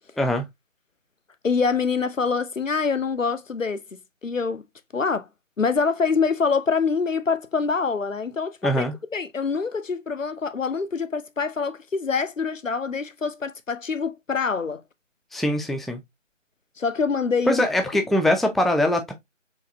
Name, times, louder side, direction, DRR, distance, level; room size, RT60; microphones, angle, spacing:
voice 1, 1.4-4.6 4.9-5.3 5.6-8.8 9.1-14.8 16.8-17.7, left 5 dB, 80° left, 0.7 m, -25 dB
voice 2, 8.6-8.9 15.3-16.0 17.5-19.1, left 1 dB, ahead, 0.4 m, -22 dB
4.6 x 3.3 x 2.6 m
figure-of-eight pair, 180°, 38 cm